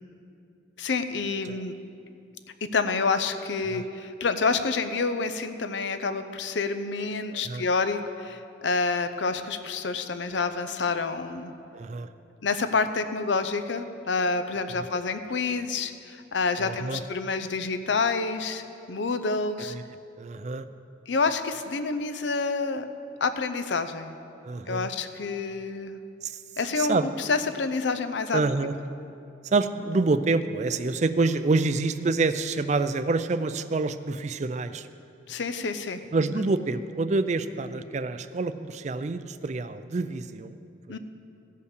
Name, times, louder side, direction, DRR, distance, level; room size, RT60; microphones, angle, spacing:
voice 1, 0.8-1.7 2.7-11.5 12.4-19.7 21.1-22.9 23.2-24.2 24.7-26.0 26.6-28.4 35.3-36.4 40.9-41.0, left 4 dB, 75° left, 10 dB, 0.6 m, -28 dB
voice 2, 7.3-7.6 11.7-12.1 16.6-17.0 19.7-19.8 20.2-20.7 24.4-24.9 26.2-26.4 26.8-27.1 28.3-28.7 29.4-34.9 36.1-40.6 40.9-41.0, right 3 dB, 40° right, 12 dB, 0.4 m, -27 dB
16.0 x 5.5 x 6.6 m, 2.6 s
head